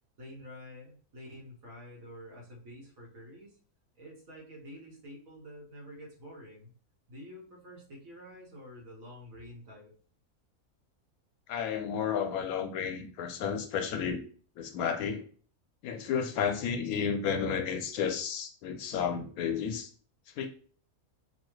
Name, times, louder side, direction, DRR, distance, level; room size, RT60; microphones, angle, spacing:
voice 1, 0.2-3.6 4.0-6.7 7.1-9.9, equal, 70° right, 1.7 m, -48 dB
voice 2, 11.5-14.2 14.6-15.2 15.8-19.9 20.4-20.5, left 7 dB, 85° left, 1.1 m, -32 dB
4.8 x 2.3 x 3.1 m
omnidirectional pair, 1.5 m